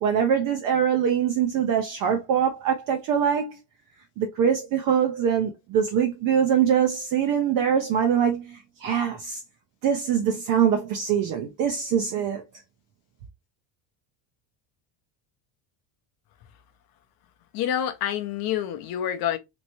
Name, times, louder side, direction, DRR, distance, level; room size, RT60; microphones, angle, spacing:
voice 1, 0.0-3.6 4.2-9.4 9.8-12.4, right 8 dB, 45° right, 0.5 m, -23 dB
voice 2, 17.5-19.4, left 10 dB, 50° left, 0.6 m, -27 dB
3.1 x 3.0 x 2.8 m
cardioid pair, 180°, 49 cm